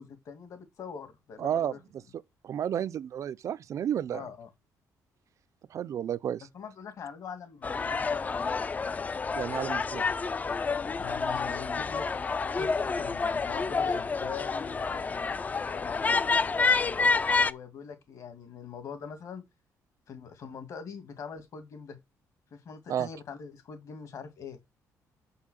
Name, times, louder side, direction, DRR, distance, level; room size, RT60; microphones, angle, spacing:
voice 1, 0.0-1.8 4.1-4.5 6.5-8.6 11.0-15.2 15.6-16.8 17.3-19.4 20.1-22.0 22.5-24.6, left 6 dB, 55° left, 2.4 m, -43 dB
voice 2, 1.4-1.8 2.4-4.3 5.7-6.5 9.3-10.1 22.9-23.1, right 9 dB, 55° right, 0.5 m, -31 dB
sound 1, 7.6-17.5, left 4 dB, 25° left, 0.4 m, -29 dB
6.5 x 5.6 x 6.5 m
cardioid pair, 130°, 7 cm